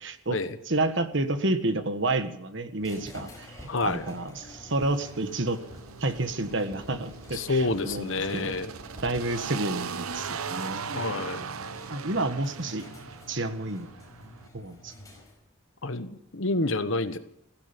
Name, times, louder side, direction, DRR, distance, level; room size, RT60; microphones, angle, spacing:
voice 1, 0.0-0.4 0.7-5.6 6.0-8.5 9.0-10.9 11.9-12.9 13.3-13.9 14.2-14.9, right 2 dB, 55° right, 9 dB, 1.6 m, -30 dB
sound 1, 2.8-15.6, left 2 dB, 15° left, 5.4 m, -50 dB
sound 2, 3.5-10.5 10.8-11.1, equal, 15° right, 4.1 m, -50 dB
voice 2, 3.7-4.0 7.3-8.7 10.9-11.5 15.8-17.2, left 2 dB, 65° left, 11 dB, 1.2 m, -28 dB
sound 3, 4.8-14.5, right 6 dB, 85° right, 0.8 m, -39 dB
16.5 x 15.5 x 5.4 m, 0.77 s
head